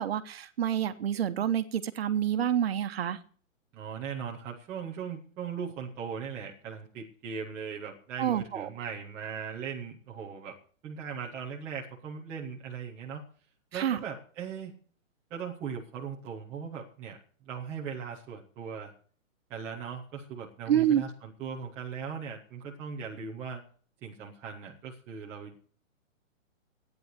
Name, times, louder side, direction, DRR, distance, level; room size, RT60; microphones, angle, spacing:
voice 1, 0.0-3.2 8.2-8.7 13.7-14.0 20.7-21.0, right 10 dB, 50° right, 11 dB, 1.1 m, -28 dB
voice 2, 3.7-10.6 10.8-13.3 13.7-14.7 15.3-18.9 19.5-23.6 24.0-25.7, right 6 dB, 5° right, -3 dB, 0.5 m, -39 dB
12.5 x 9.5 x 6.6 m, 0.44 s
hypercardioid pair, 160°, 40 cm